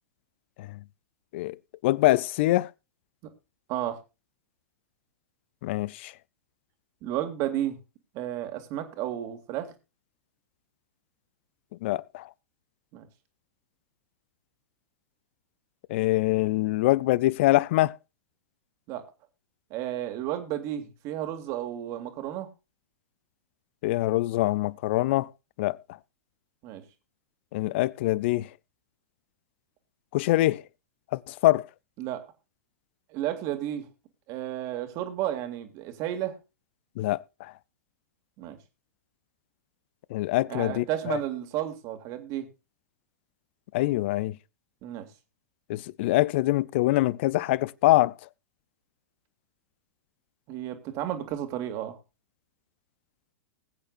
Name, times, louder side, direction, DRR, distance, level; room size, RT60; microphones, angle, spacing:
voice 1, 1.8-2.7 5.6-6.1 11.8-12.3 15.9-17.9 23.8-25.3 25.6-25.8 27.5-28.5 30.1-30.6 31.1-31.7 37.0-37.5 40.1-41.2 43.7-44.4 45.7-48.2, left 17 dB, 50° left, 0.5 m, -24 dB
voice 2, 7.0-7.8 8.1-9.7 12.9-13.1 18.9-19.1 19.7-22.5 26.6-26.8 32.0-32.2 33.1-33.9 34.3-36.4 38.4-38.6 40.5-42.5 44.8-45.1 50.5-52.0, right 12 dB, 40° right, 2.3 m, -32 dB
20.5 x 8.8 x 2.5 m
figure-of-eight pair, 100°, 8 cm